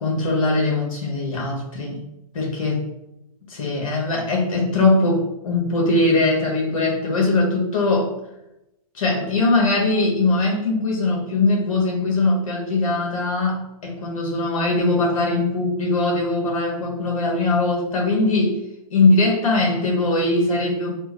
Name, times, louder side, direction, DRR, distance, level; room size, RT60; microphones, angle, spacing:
voice 1, 0.0-2.0 2.3-2.8 3.5-8.1 8.9-18.6 18.9-20.9, left 2 dB, 60° left, -1 dB, 1.3 m, -21 dB
3.4 x 2.5 x 3.0 m, 0.89 s
hypercardioid pair, 125°, 19 cm